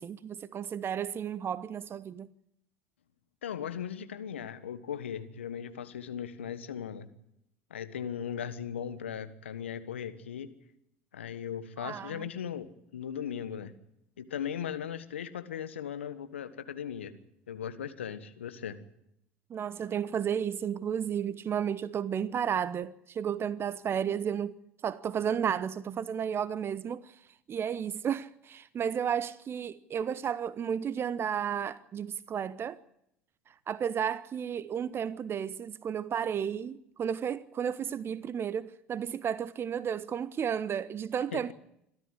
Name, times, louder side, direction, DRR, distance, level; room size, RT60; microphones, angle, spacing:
voice 1, 0.0-2.3 11.8-12.3 19.5-24.6 24.8-27.1 27.5-32.8 33.7-41.5, right 8 dB, 40° right, 1.0 m, -33 dB
voice 2, 3.4-7.1 7.7-10.5 11.1-13.7 14.2-17.1 17.5-18.8 41.3-41.4, left 8 dB, 85° left, 1.5 m, -38 dB
26.5 x 13.5 x 9.7 m
hypercardioid pair, 70°, 6 cm